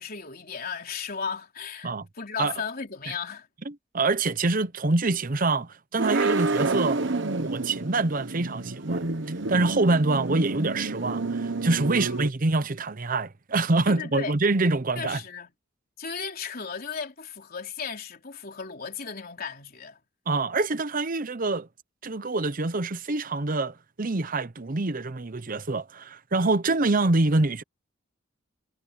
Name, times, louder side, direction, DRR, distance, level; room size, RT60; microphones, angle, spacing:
voice 1, 0.0-3.5 11.9-12.2 13.9-14.3 15.0-15.5 16.0-20.0 27.0-27.1, left 6 dB, 45° left, 3.8 m, -35 dB
voice 2, 3.7-7.0 7.4-9.1 9.5-15.2 20.3-21.7 22.0-27.6, right 3 dB, 45° right, 0.8 m, -25 dB
sound 1, 6.0-12.3, right 3 dB, 60° right, 1.1 m, -29 dB
head